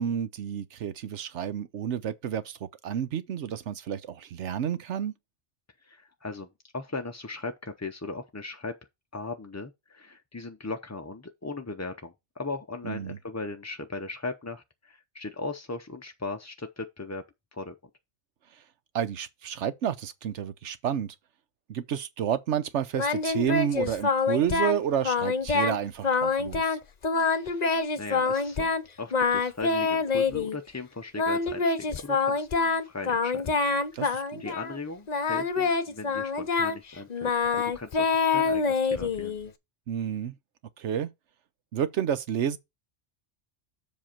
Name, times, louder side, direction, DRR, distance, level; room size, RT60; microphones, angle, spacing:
voice 1, 0.0-5.1 12.9-13.2 18.9-21.1 21.7-26.8 33.9-34.4 39.9-40.3 40.8-41.1 41.7-42.6, right 9 dB, 80° right, 1.1 m, -30 dB
voice 2, 5.8-8.7 9.1-17.2 17.5-17.7 27.3-28.7 29.0-33.6 33.9-39.4, left 3 dB, 20° left, 0.4 m, -38 dB
Singing, 23.0-24.8 25.0-25.8 26.0-28.8 29.1-30.6 31.2-34.8 35.1-39.5, left 4 dB, 40° left, 0.8 m, -26 dB
7.6 x 5.2 x 4.4 m
omnidirectional pair, 1.2 m